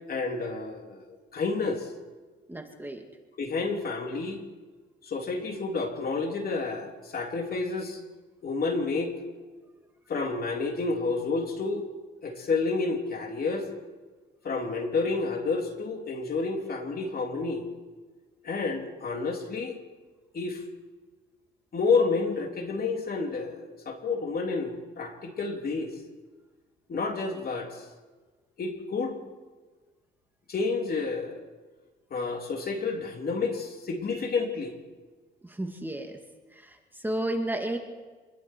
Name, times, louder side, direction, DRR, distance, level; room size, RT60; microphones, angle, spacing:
voice 1, 0.1-1.9 3.4-4.4 5.0-8.0 8.4-9.1 10.1-11.8 12.2-13.7 14.4-17.6 18.4-19.8 20.3-20.6 21.7-25.9 26.9-27.8 28.6-29.2 30.5-31.4 32.1-34.7, left 4 dB, 50° left, 2 dB, 3.4 m, -30 dB
voice 2, 2.5-3.0 35.4-36.2 36.5-37.8, right 1 dB, 10° right, 3 dB, 2.3 m, -32 dB
27.5 x 21.0 x 4.7 m, 1.3 s
cardioid pair, 90°, 20 cm